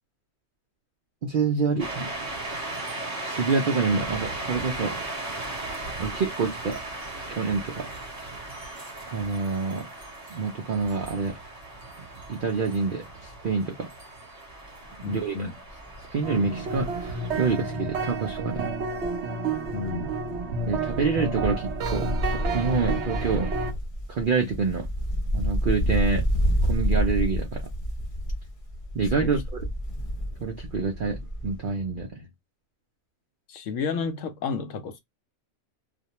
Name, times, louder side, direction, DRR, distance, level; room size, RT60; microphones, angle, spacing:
voice 1, 1.2-2.1 3.2-5.0 6.0-6.8 7.3-7.9 9.1-9.9 10.3-11.4 12.3-13.9 15.0-15.5 16.1-18.7 20.6-23.5 24.1-24.9 25.3-26.3 26.6-27.6 28.9-29.7 30.4-32.2, right 4 dB, 80° right, 0.4 m, -27 dB
sound 1, 1.8-17.5, right 2 dB, 30° right, 1.0 m, -37 dB
Wind, 14.6-14.9 15.3-15.4 15.7-19.2 19.5-31.7 31.9-32.0, equal, 35° left, 0.5 m, -29 dB
voice 2, 15.0-15.5 19.7-20.1 29.2-29.3 33.5-35.0, left 5 dB, 70° left, 0.8 m, -31 dB
sound 2, 16.2-23.7, right 3 dB, 60° right, 0.9 m, -31 dB
2.4 x 2.2 x 2.8 m
omnidirectional pair, 1.5 m